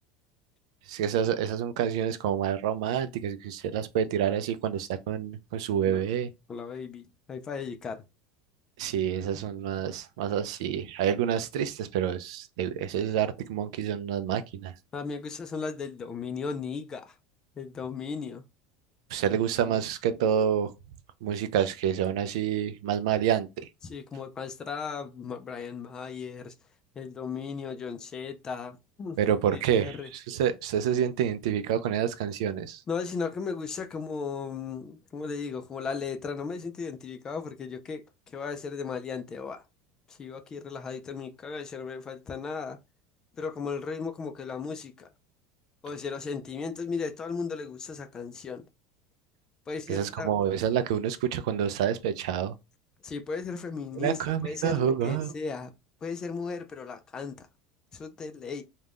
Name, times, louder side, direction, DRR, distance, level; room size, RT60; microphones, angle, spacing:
voice 1, 0.9-6.3 8.8-14.7 19.1-20.7 21.2-23.7 29.2-30.0 30.3-32.8 49.9-52.5 54.0-55.3, right 9 dB, 85° right, 0.4 m, -28 dB
voice 2, 6.5-8.0 14.9-17.2 17.6-18.4 19.3-19.4 19.6-19.7 23.8-26.5 27.0-30.1 32.9-39.6 40.1-42.8 43.3-45.1 45.8-48.7 49.7-50.3 53.0-55.7 56.0-57.5 57.9-58.6, left 5 dB, 20° left, 0.3 m, -36 dB
2.4 x 2.2 x 3.3 m
cardioid pair, 155°, 3 cm